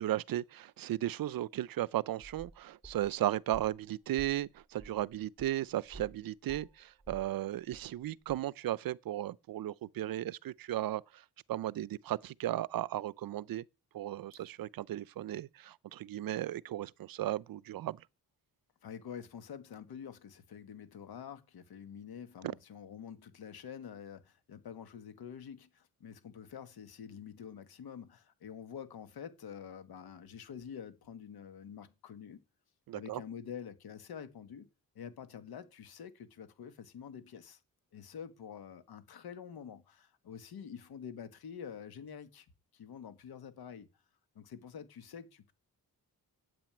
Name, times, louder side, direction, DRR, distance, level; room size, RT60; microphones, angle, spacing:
voice 1, 0.0-11.2 11.5-13.6 13.9-18.0 22.4-22.5 32.9-33.2, right 13 dB, 65° right, 0.6 m, -35 dB
sound 1, 2.2-3.8 4.2-6.2 6.5-8.0 8.3-8.4, right 2 dB, 10° left, 3.1 m, -52 dB
voice 2, 18.8-32.4 32.9-34.7 34.9-37.6 37.9-42.5 42.7-43.9 44.3-45.5, left 8 dB, 80° left, 1.6 m, -47 dB
9.1 x 8.5 x 8.8 m
wide cardioid pair, 175°, 37 cm